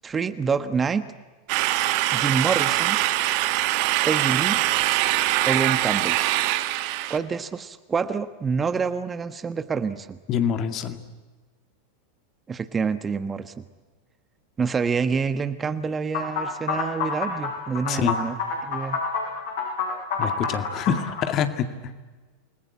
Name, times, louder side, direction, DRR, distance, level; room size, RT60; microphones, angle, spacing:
voice 1, 0.0-1.1 2.1-3.0 4.0-4.6 5.5-6.2 7.1-10.2 12.5-13.6 14.6-18.4 18.6-19.0 20.9-21.0, right 5 dB, 20° right, 11 dB, 1.2 m, -27 dB
sound 1, 1.5-7.2, right 16 dB, 50° right, 1.4 m, -23 dB
voice 2, 10.3-11.0 17.9-18.2 20.2-21.9, left 8 dB, 40° left, 8 dB, 2.2 m, -26 dB
sound 2, 16.1-21.3, left 5 dB, 60° left, 7.2 m, -28 dB
28.5 x 20.5 x 8.5 m, 1.3 s
figure-of-eight pair, 90°, 0 cm